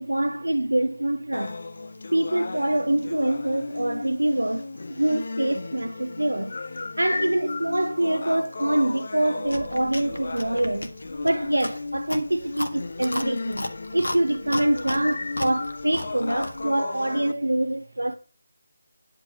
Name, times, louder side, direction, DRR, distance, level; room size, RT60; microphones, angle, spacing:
voice 1, 0.0-1.6 2.1-10.9 11.2-18.2, right 1 dB, 80° right, 0.7 m, -25 dB
sound 1, 1.3-17.3, left 3 dB, 55° left, 0.5 m, -35 dB
Chewing mastication, 9.4-16.7, left 1 dB, 80° left, 1.6 m, -35 dB
10.5 x 4.9 x 6.4 m
figure-of-eight pair, 155°, 0 cm